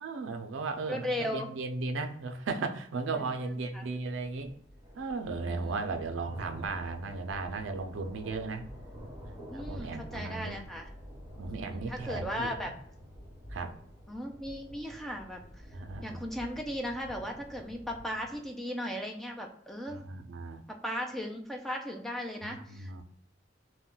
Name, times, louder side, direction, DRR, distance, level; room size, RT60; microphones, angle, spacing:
voice 1, 0.0-4.5 5.0-8.7 9.3-10.6 11.4-12.7 13.5-13.7 15.7-16.2 19.9-20.7 22.4-23.0, right 3 dB, 85° right, 6 dB, 0.4 m, -36 dB
voice 2, 0.9-1.5 3.4-3.8 5.4-5.9 9.5-10.9 11.5-12.7 14.1-15.4 16.0-20.0 20.7-23.0, equal, ahead, 1 dB, 0.4 m, -37 dB
sound 1, 4.0-18.5, equal, 20° right, 1.1 m, -48 dB
2.2 x 2.1 x 3.7 m, 0.64 s
head